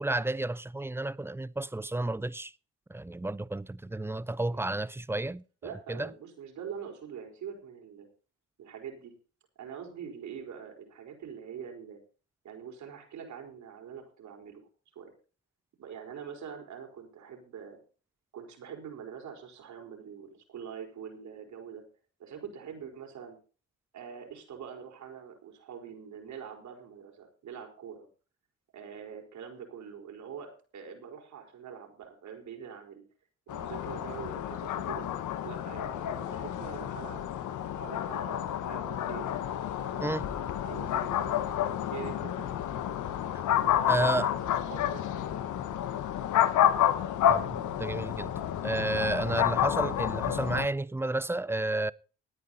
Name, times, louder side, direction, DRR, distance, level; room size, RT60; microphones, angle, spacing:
voice 1, 0.0-2.5 2.9-6.1 40.0-40.3 43.9-44.3 47.3-48.3 48.6-51.9, right 2 dB, 10° right, 0.5 m, -31 dB
voice 2, 5.6-8.1 8.6-9.1 9.6-12.0 12.4-14.7 14.9-15.1 15.8-17.8 18.3-21.8 22.2-23.4 23.9-28.1 28.7-33.0 33.5-35.1 35.4-37.3 37.8-39.3 39.8-40.2 40.7-41.4 41.9-42.5 43.6-45.4 49.4-49.6, right 7 dB, 70° right, 4.9 m, -44 dB
sound 1, 33.5-50.7, left 11 dB, 80° left, 1.4 m, -30 dB
17.0 x 9.7 x 4.2 m
cardioid pair, 90°, 30 cm